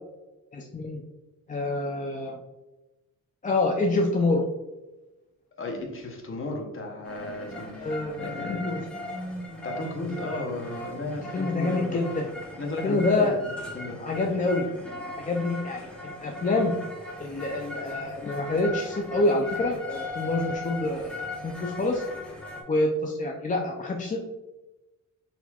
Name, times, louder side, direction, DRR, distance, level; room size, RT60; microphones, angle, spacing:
voice 1, 0.5-1.0 1.5-2.4 3.4-4.5 7.8-8.2 8.5-8.8 11.3-12.3 12.8-13.4 14.0-14.7 15.2-15.8 16.2-16.7 17.2-22.0 22.7-24.2, left 2 dB, 25° left, 0 dB, 0.4 m, -26 dB
voice 2, 5.6-7.9 8.2-8.7 9.6-12.0 12.5-14.0, left 2 dB, 40° left, 1 dB, 0.9 m, -34 dB
sound 1, 7.1-22.6, left 1 dB, 5° left, 0.8 m, -38 dB
4.2 x 4.1 x 2.3 m, 1.0 s
wide cardioid pair, 145°, 31 cm